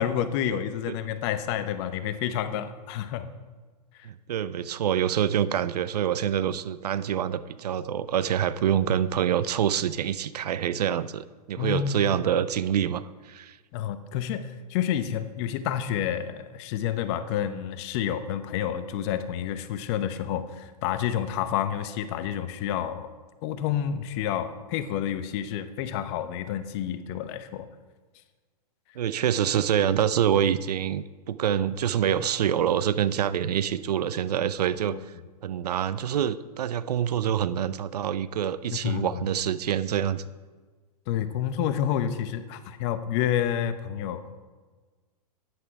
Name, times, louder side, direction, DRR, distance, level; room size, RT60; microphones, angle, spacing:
voice 1, 0.0-3.3 4.0-4.1 11.6-12.1 13.7-23.1 23.4-27.7 34.9-35.0 38.7-39.3 41.1-44.3, left 10 dB, 40° left, 11 dB, 0.9 m, -29 dB
voice 2, 4.0-13.6 29.0-35.0 35.4-40.2, right 9 dB, 70° right, 15 dB, 0.6 m, -26 dB
10.5 x 9.7 x 4.6 m, 1.4 s
hypercardioid pair, 120°, 21 cm